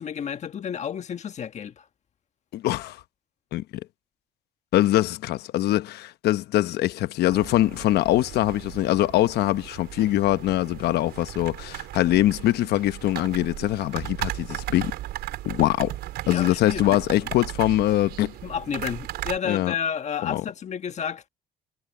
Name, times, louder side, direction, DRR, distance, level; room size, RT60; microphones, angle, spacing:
voice 1, 0.0-1.7 16.3-17.3 18.4-21.3, left 8 dB, 45° left, 1.4 m, -31 dB
voice 2, 2.5-3.0 3.5-3.6 4.7-14.9 15.4-16.0 16.3-18.3 19.4-19.7 20.2-20.4, left 15 dB, 75° left, 1.0 m, -23 dB
sound 1, 7.3-19.4, right 14 dB, 80° right, 4.6 m, -36 dB
cardioid pair, 110°, 17 cm